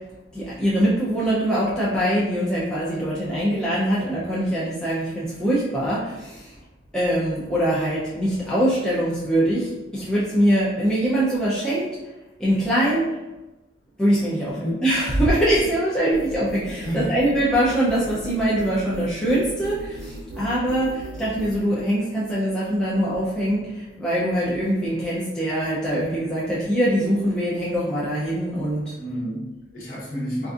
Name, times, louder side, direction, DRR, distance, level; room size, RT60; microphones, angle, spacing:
voice 1, 0.3-6.5 6.9-11.9 12.4-13.2 14.0-14.6 14.8-28.9, right 1 dB, 5° left, -9 dB, 0.5 m, -23 dB
sound 1, 16.1-21.6, right 1 dB, 75° right, 0.4 m, -37 dB
voice 2, 16.8-17.3 29.0-30.5, equal, 45° left, -6 dB, 1.0 m, -30 dB
3.8 x 2.5 x 2.4 m, 1.0 s
head